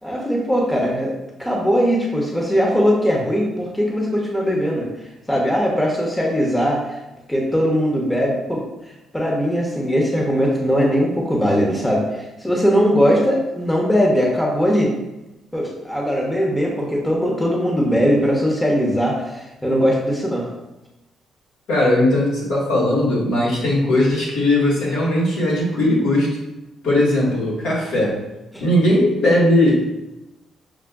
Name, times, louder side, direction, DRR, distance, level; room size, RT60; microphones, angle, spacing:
voice 1, 0.0-1.1 1.4-4.9 5.3-6.8 7.3-8.6 9.1-14.9 15.5-20.5 28.5-28.6, equal, 10° left, -2 dB, 0.8 m, -20 dB
voice 2, 21.7-26.3 26.8-28.2 28.6-29.8, left 1 dB, 85° left, -6 dB, 1.5 m, -18 dB
6.3 x 2.1 x 2.3 m, 1.0 s
cardioid pair, 90°, 0 cm